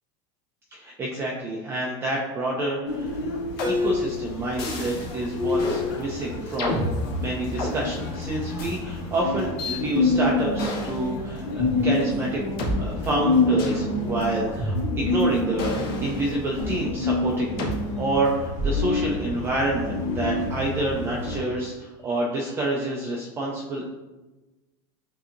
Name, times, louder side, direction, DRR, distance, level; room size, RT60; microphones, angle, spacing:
voice 1, 0.7-3.2 3.6-6.9 7.2-12.4 12.8-23.9, right 1 dB, 15° right, -2 dB, 0.4 m, -28 dB
sound 1, 2.9-21.4, left 2 dB, 75° left, 1.3 m, -28 dB
sound 2, 3.6-4.1 4.6-5.1 5.6-5.9 6.6-7.7 8.6-8.7 9.6-9.8 10.6-11.0 11.6-11.7 12.6-12.7 13.6-13.8 14.6-15.2 15.6-16.8 17.6-17.8 18.6-19.0, left 1 dB, 50° left, 1.3 m, -29 dB
7.7 x 2.7 x 2.5 m, 1.1 s
supercardioid pair, 170°, 15 cm